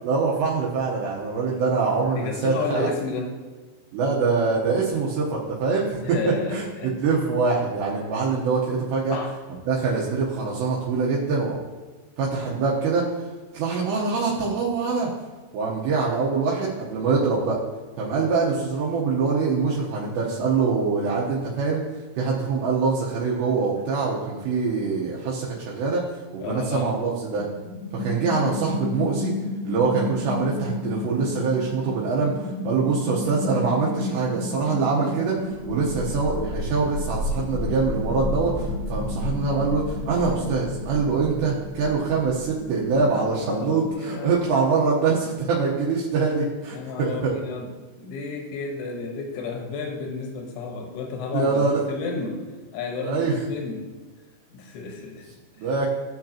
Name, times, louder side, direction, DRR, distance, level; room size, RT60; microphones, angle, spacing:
voice 1, 0.0-2.9 3.9-6.0 6.5-6.6 7.0-9.2 9.7-11.6 12.2-13.1 13.5-15.1 15.5-17.6 18.0-21.8 22.2-26.0 26.3-27.4 27.9-29.3 29.6-47.3 51.3-51.8 53.0-53.3 55.6-55.9, right 4 dB, 75° right, -5 dB, 3.2 m, -24 dB
voice 2, 2.1-3.3 6.0-7.0 9.1-9.3 26.4-26.9 43.1-44.4 46.7-47.7 48.0-52.4 52.7-53.9 54.5-55.7, left 4 dB, 80° left, 1 dB, 3.5 m, -32 dB
sound 1, 27.3-43.9, left 2 dB, 45° right, 1.4 m, -32 dB
15.5 x 6.4 x 2.9 m, 1.3 s
omnidirectional pair, 5.2 m